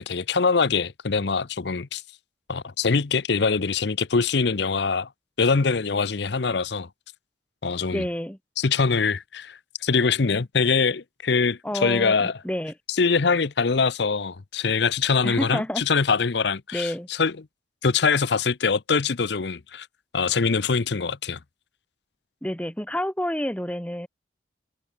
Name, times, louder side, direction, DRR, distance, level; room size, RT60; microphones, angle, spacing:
voice 1, 0.0-2.0 2.5-5.1 5.4-6.9 7.6-8.0 8.6-12.3 12.9-17.3 17.8-19.9 20.1-21.4, left 5 dB, 60° left, 0.7 m, -23 dB
voice 2, 7.9-8.4 11.6-12.7 15.2-15.8 16.7-17.1 22.4-24.1, equal, 5° left, 1.7 m, -29 dB
head